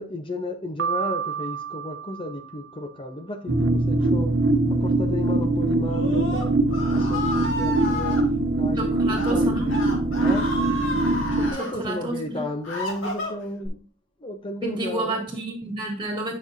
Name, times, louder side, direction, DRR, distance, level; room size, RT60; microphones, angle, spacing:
voice 1, 0.0-4.3 4.8-6.5 6.9-8.2 8.6-9.0 9.3-9.8 10.2-10.5 11.3-13.8 14.2-15.2, left 2 dB, 25° left, 0.7 m, -33 dB
Piano, 0.8-2.9, right 8 dB, 65° right, 0.6 m, -31 dB
sound 1, 3.5-11.5, right 2 dB, 80° right, 1.0 m, -22 dB
Screaming, 5.8-8.2 9.0-9.3 9.7-11.7 12.3-13.7, left 1 dB, 80° left, 2.6 m, -31 dB
voice 2, 8.8-9.7 11.5-12.4 14.6-16.3, right 2 dB, 25° right, 2.2 m, -30 dB
9.6 x 6.2 x 2.6 m
head